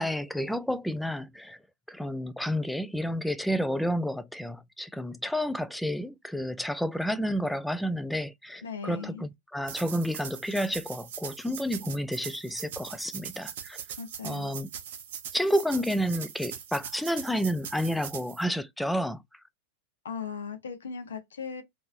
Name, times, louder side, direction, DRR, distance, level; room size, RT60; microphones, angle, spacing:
voice 1, 0.0-1.6 1.9-13.8 14.2-14.7 15.3-19.2, equal, ahead, 0.3 m, -30 dB
voice 2, 8.6-9.3 14.0-14.6 20.0-21.6, left 6 dB, 65° left, 0.7 m, -38 dB
sound 1, 9.6-18.4, right 8 dB, 55° right, 0.7 m, -41 dB
3.0 x 2.6 x 2.4 m
figure-of-eight pair, 90°, 0 cm